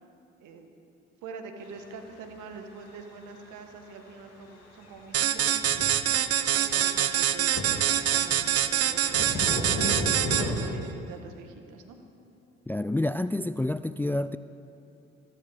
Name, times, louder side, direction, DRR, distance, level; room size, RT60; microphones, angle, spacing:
voice 1, 0.4-0.8 1.2-6.2 6.5-9.4 9.7-12.0, right 5 dB, 70° right, 5 dB, 1.6 m, -45 dB
sound 1, 4.9-5.3 5.5-6.1 6.7-6.8 7.2-8.0 8.2-10.5, left 1 dB, 55° left, 3.1 m, -32 dB
sound 2, 5.1-10.7, right 10 dB, 50° right, 0.8 m, -25 dB
voice 2, 12.7-14.4, left 1 dB, 5° left, 14 dB, 0.3 m, -28 dB
21.0 x 15.0 x 3.6 m, 2.6 s
hypercardioid pair, 50°, 31 cm